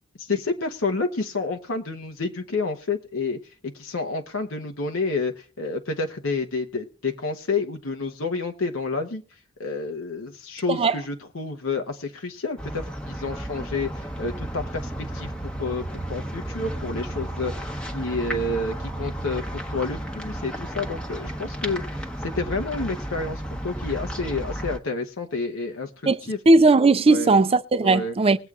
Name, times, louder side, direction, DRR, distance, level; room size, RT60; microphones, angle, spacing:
voice 1, 0.2-9.2 9.6-25.9 26.2-26.4 27.1-27.3 27.8-28.2, left 3 dB, 75° left, 0.9 m, -29 dB
sound 1, 12.6-24.8, right 1 dB, 5° left, 0.9 m, -33 dB
voice 2, 26.5-28.4, right 3 dB, 30° right, 0.4 m, -17 dB
21.5 x 7.9 x 2.4 m
head